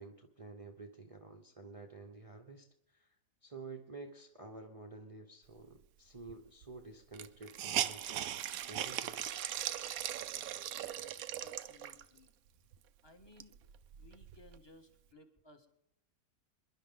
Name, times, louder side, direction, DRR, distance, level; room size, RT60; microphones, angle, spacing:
voice 1, 0.0-8.3 8.7-9.3, right 3 dB, 25° right, 3 dB, 0.9 m, -51 dB
Hiss, 6.3-6.4 6.6-6.7 7.1-12.2 12.7-12.8 13.2-14.6, right 11 dB, 75° right, 1.1 m, -39 dB
voice 2, 11.4-12.3 13.0-13.6 14.0-15.7, left 2 dB, 20° left, 5 dB, 1.5 m, -60 dB
27.0 x 11.0 x 3.8 m, 0.89 s
omnidirectional pair, 1.5 m